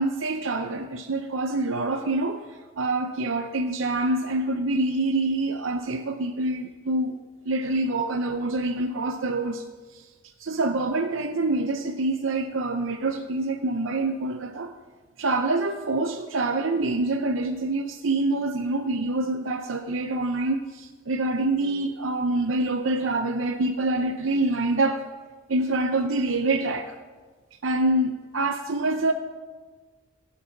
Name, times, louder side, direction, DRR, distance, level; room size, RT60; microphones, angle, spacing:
voice 1, 0.0-2.4 2.8-7.2 7.5-9.7 9.9-10.1 10.4-14.7 15.2-25.0 25.5-27.0 27.6-29.1, right 2 dB, 75° right, 6 dB, 0.7 m, -26 dB
16.5 x 8.1 x 5.8 m, 1.4 s
head